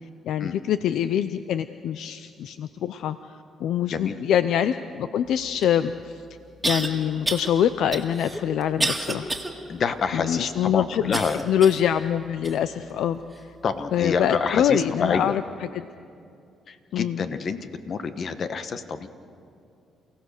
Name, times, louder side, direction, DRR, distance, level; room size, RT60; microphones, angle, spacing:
voice 1, 0.2-6.2 6.6-9.3 10.1-11.1 11.4-13.5 13.9-15.8 16.9-17.2, left 9 dB, 80° left, 12 dB, 0.5 m, -24 dB
sound 1, 5.6-5.7 6.6-6.9 7.2-7.5 7.9-9.5 10.0-10.1 11.1-11.9 12.4-12.6 13.3-13.4, right 2 dB, 10° right, 2.2 m, -28 dB
voice 2, 9.7-11.5 13.6-15.3 16.7-19.1, left 5 dB, 55° left, 10 dB, 1.3 m, -27 dB
29.0 x 17.0 x 6.6 m, 2.5 s
cardioid pair, 90°, 0 cm